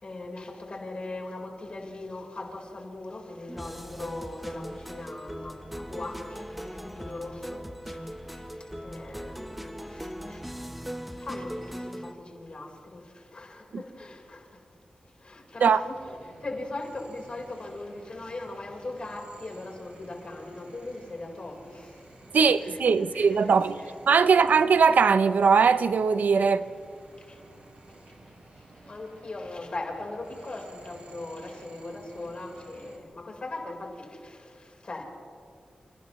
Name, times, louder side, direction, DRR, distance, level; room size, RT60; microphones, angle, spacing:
voice 1, 0.0-10.5 11.2-14.6 15.2-23.9 24.2-24.3 27.2-27.4 28.5-35.0, left 2 dB, 40° left, 4.5 m, -40 dB
sound 1, 3.5-12.1, equal, 5° right, 0.9 m, -39 dB
sound 2, 15.8-33.0, right 2 dB, 55° right, 5.6 m, -53 dB
voice 2, 22.3-23.7 24.1-26.7, right 5 dB, 90° right, 0.7 m, -20 dB
29.5 x 29.0 x 3.2 m
wide cardioid pair, 140°, 3 cm